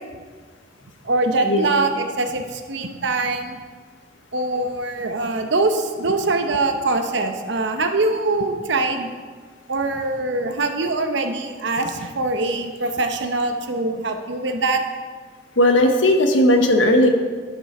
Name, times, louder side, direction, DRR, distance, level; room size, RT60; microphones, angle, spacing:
voice 1, 1.0-3.6 4.3-9.1 9.7-14.8, right 2 dB, 70° right, 6 dB, 0.8 m, -23 dB
voice 2, 15.6-17.1, left 1 dB, 85° left, 5 dB, 1.0 m, -16 dB
10.5 x 6.1 x 4.3 m, 1.5 s
head